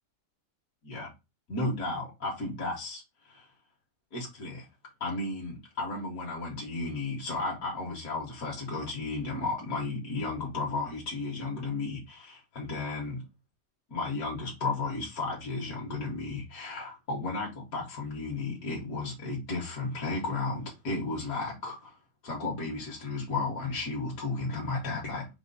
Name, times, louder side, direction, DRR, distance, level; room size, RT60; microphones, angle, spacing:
voice 1, 1.5-3.5 4.1-4.7 5.0-13.2 13.9-22.0 22.2-25.3, left 3 dB, 75° left, 1.6 m, -34 dB
4.3 x 2.1 x 3.8 m
omnidirectional pair, 1.5 m